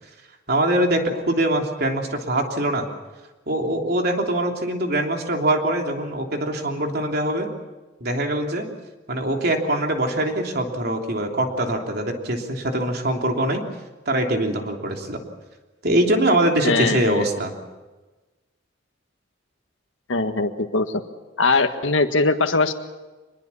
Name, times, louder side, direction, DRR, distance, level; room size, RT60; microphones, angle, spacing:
voice 1, 0.5-2.9 3.5-7.5 8.0-8.7 9.1-13.6 14.1-15.2 15.8-17.5, right 1 dB, 55° right, 2 dB, 3.2 m, -23 dB
voice 2, 16.6-17.3 20.1-21.0 21.4-22.7, left 3 dB, 85° left, 7 dB, 1.7 m, -21 dB
25.0 x 21.0 x 7.1 m, 1.2 s
head